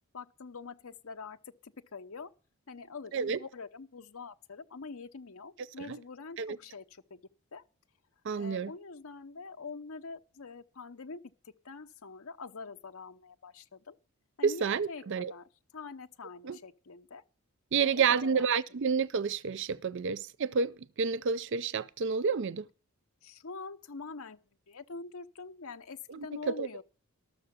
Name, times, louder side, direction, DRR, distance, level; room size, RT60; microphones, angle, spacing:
voice 1, 0.1-1.4 1.6-2.3 2.7-7.2 7.5-7.6 8.4-14.0 14.4-17.2 17.8-18.5 23.2-24.4 24.7-26.8, left 4 dB, 70° left, 0.8 m, -45 dB
voice 2, 8.2-8.7 14.4-15.3 16.4-16.6 17.7-22.7 26.1-26.7, right 6 dB, 55° right, 0.5 m, -30 dB
13.0 x 6.7 x 6.8 m
head